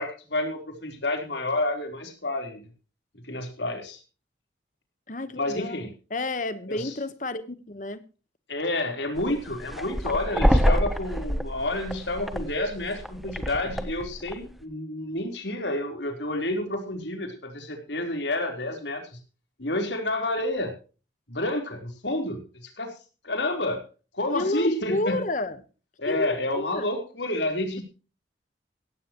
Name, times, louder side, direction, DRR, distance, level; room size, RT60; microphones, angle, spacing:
voice 1, 0.0-2.6 3.2-4.0 5.4-5.9 6.7-6.9 8.5-19.2 19.6-20.7 21.3-22.9 23.2-23.8 24.1-25.2 26.0-27.8, left 1 dB, 75° left, 4 dB, 4.0 m, -29 dB
voice 2, 5.1-8.0 24.3-25.6 26.1-26.9, left 2 dB, 45° left, 13 dB, 1.2 m, -31 dB
sound 1, 9.2-14.5, equal, ahead, 1.1 m, -27 dB
16.5 x 15.0 x 3.1 m, 0.35 s
head